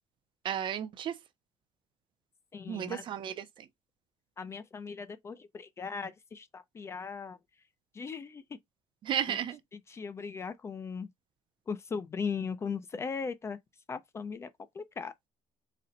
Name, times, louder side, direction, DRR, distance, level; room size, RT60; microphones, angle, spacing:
voice 1, 0.4-1.1 2.7-3.4 9.0-9.6, right 9 dB, 45° right, 0.5 m, -33 dB
voice 2, 2.5-3.1 4.4-7.4 8.0-8.4 9.3-9.4 9.7-11.1 11.7-13.6 13.9-14.5 14.8-15.1, left 5 dB, 20° left, 0.4 m, -38 dB
4.2 x 2.1 x 3.8 m
cardioid pair, 155°, 12 cm